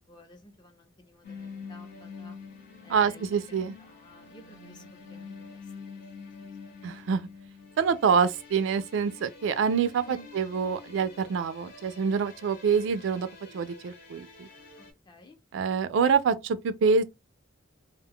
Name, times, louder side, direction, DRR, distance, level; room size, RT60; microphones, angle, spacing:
voice 1, 0.1-2.3 2.8-4.8 5.1-6.0 6.4-6.7 10.1-10.3 14.8-15.4, equal, 25° left, 0.5 m, -53 dB
sound 1, 1.2-14.9, left 4 dB, 55° left, 0.9 m, -47 dB
voice 2, 2.9-3.7 6.8-7.3 7.8-13.3 13.5-14.5 15.5-17.0, right 6 dB, 70° right, 0.3 m, -26 dB
2.2 x 2.0 x 3.5 m
head